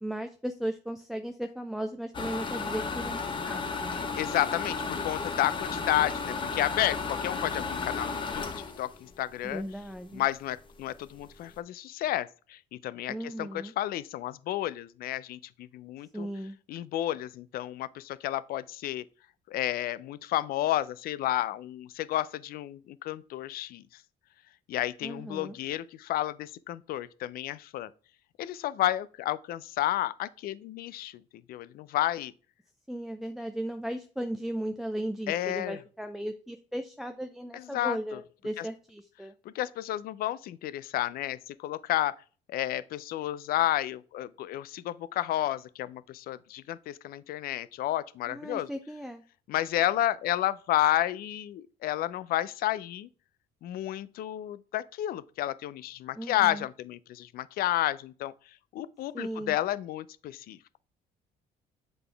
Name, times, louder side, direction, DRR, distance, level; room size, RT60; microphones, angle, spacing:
voice 1, 0.0-3.9 9.4-10.2 13.1-13.7 16.1-16.6 25.0-25.6 32.9-39.3 48.3-49.2 56.2-56.7 59.1-59.6, right 1 dB, ahead, 0.4 m, -36 dB
sound 1, 2.1-9.9 10.3-10.4 10.8-10.9 11.1-11.5, left 4 dB, 30° left, 0.8 m, -34 dB
voice 2, 4.1-9.6 10.1-16.3 16.7-19.0 19.5-23.8 24.7-27.9 28.4-31.2 31.5-32.3 35.3-35.8 37.5-38.2 38.6-38.7 39.5-42.1 42.5-48.7 49.5-53.1 53.6-58.3 58.7-60.8, left 13 dB, 65° left, 0.4 m, -31 dB
7.5 x 4.0 x 3.3 m
cardioid pair, 110°, 17 cm